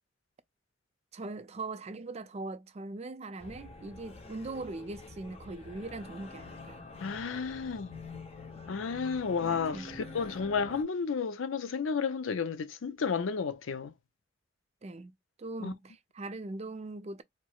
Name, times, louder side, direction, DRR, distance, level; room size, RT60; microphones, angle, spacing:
voice 1, 1.1-6.8 9.4-9.9 14.8-15.1 15.4-17.2, right 2 dB, 35° right, 0.4 m, -41 dB
sound 1, 3.4-10.8, left 3 dB, 30° left, 0.8 m, -47 dB
voice 2, 7.0-7.9 8.7-13.9 15.6-15.7, left 5 dB, 80° left, 0.5 m, -32 dB
4.4 x 2.0 x 2.3 m
head